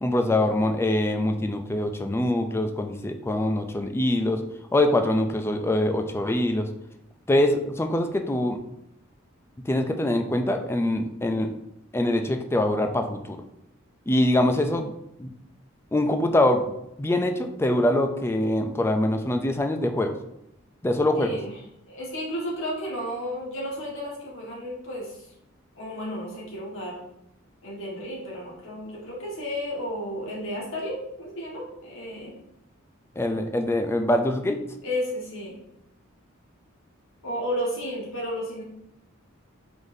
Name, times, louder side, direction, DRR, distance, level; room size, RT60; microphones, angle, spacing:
voice 1, 0.0-4.4 4.7-6.7 7.3-8.6 9.7-11.5 11.9-13.4 14.1-14.9 15.2-15.3 15.9-16.7 17.0-20.1 20.8-21.3 33.2-34.6, left 1 dB, 10° left, 6 dB, 0.4 m, -24 dB
voice 2, 21.1-21.5 21.9-25.3 25.7-27.0 27.6-32.4 34.8-35.6 37.2-38.6, equal, 65° left, -3 dB, 1.5 m, -32 dB
4.9 x 3.9 x 2.6 m, 0.79 s
head